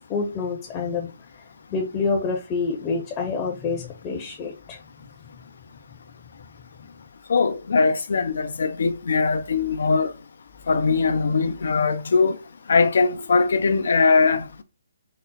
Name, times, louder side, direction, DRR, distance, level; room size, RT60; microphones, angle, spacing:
voice 1, 0.1-1.1 1.7-4.8, left 4 dB, 20° left, 0.8 m, -27 dB
voice 2, 7.3-10.1 10.7-12.4 12.7-14.6, left 4 dB, 60° left, 0.5 m, -21 dB
4.1 x 2.0 x 3.9 m
figure-of-eight pair, 140°, 0 cm